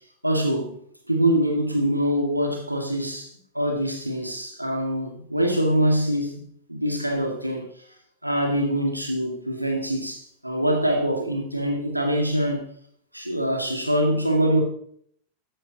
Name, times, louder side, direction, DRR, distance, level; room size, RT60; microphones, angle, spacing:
voice 1, 0.2-0.8 1.1-3.3 3.5-6.4 6.7-7.7 8.2-12.7 13.1-14.6, right 1 dB, 90° right, 2.0 m, -24 dB
13.0 x 10.0 x 2.8 m
figure-of-eight pair, 90°, 0 cm